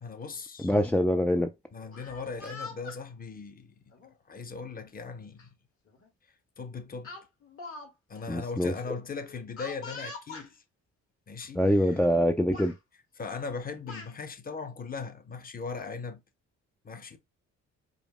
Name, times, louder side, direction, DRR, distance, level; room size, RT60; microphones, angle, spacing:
voice 1, 0.0-0.7 1.7-3.7 4.3-5.5 6.6-7.2 8.1-10.6 11.3-12.0 13.2-16.2 16.8-17.2, left 4 dB, 30° left, 0.8 m, -39 dB
voice 2, 0.6-1.5 8.3-8.7 11.5-12.7, equal, 5° left, 0.3 m, -24 dB
Speech, 1.9-3.0 3.9-4.1 5.4-5.5 5.9-6.1 7.0-7.9 8.1-8.3 9.6-10.5 11.4-11.5 11.9-12.2 12.5-12.8 13.5-14.1, left 3 dB, 45° left, 1.3 m, -43 dB
5.1 x 2.0 x 3.5 m
cardioid pair, 90°, 30 cm